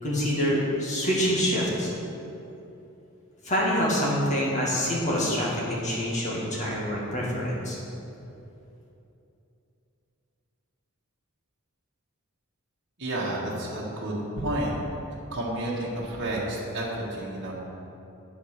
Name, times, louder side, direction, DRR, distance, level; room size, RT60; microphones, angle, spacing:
voice 1, 0.0-1.9 3.4-7.8, equal, 35° left, -5 dB, 2.1 m, -26 dB
voice 2, 13.0-14.8 15.3-17.5, right 1 dB, 55° right, -5 dB, 1.7 m, -30 dB
8.6 x 5.2 x 6.5 m, 2.9 s
head